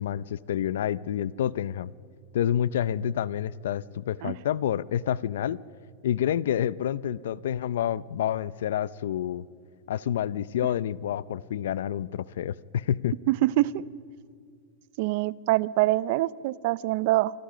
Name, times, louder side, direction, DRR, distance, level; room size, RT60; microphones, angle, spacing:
voice 1, 0.0-1.9 2.3-5.6 6.0-9.4 9.9-13.2, left 10 dB, 85° left, 19 dB, 0.6 m, -28 dB
voice 2, 13.3-13.8 15.0-17.3, right 17 dB, 55° right, 20 dB, 0.6 m, -24 dB
27.0 x 25.0 x 5.1 m, 2.4 s
supercardioid pair, 150°, 0 cm